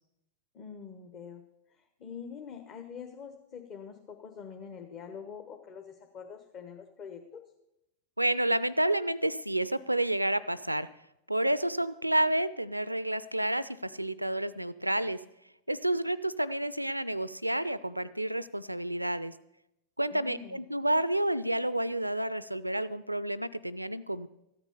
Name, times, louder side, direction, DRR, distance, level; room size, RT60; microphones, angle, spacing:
voice 1, 0.5-1.4 1.7-7.4 20.1-20.6, left 6 dB, 35° left, 4 dB, 1.2 m, -45 dB
voice 2, 8.2-10.9 11.3-15.2 15.7-19.3 20.0-24.3, right 1 dB, 85° right, 18 dB, 0.4 m, -30 dB
14.0 x 8.9 x 6.8 m, 0.87 s
figure-of-eight pair, 90°, 0 cm